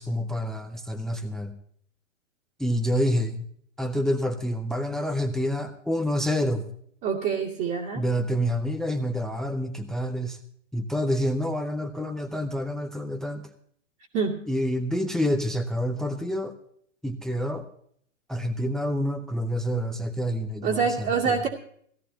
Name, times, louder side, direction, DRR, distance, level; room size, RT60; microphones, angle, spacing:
voice 1, 0.0-1.5 2.6-3.5 3.8-6.6 7.9-10.4 10.7-13.4 14.5-16.5 17.0-17.7 18.3-21.4, equal, ahead, 8 dB, 0.6 m, -28 dB
voice 2, 7.0-8.0 14.1-14.4 20.6-21.5, right 6 dB, 30° right, -4 dB, 2.5 m, -26 dB
18.0 x 16.5 x 2.8 m, 0.63 s
hypercardioid pair, 135°, 38 cm